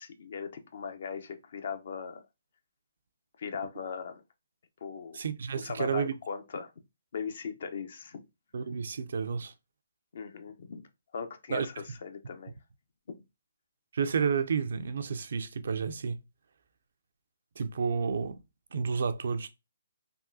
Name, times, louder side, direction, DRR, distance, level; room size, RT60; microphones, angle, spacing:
voice 1, 0.0-2.2 3.4-4.2 4.8-5.2 5.6-6.7 7.1-8.2 10.1-10.9 11.1-12.5, left 6 dB, 55° left, 0.5 m, -39 dB
voice 2, 5.1-6.1 8.5-9.5 11.5-11.7 13.9-16.2 17.6-18.4 18.7-19.5, right 6 dB, 60° right, 0.4 m, -30 dB
3.5 x 2.3 x 2.5 m
figure-of-eight pair, 140°, 0 cm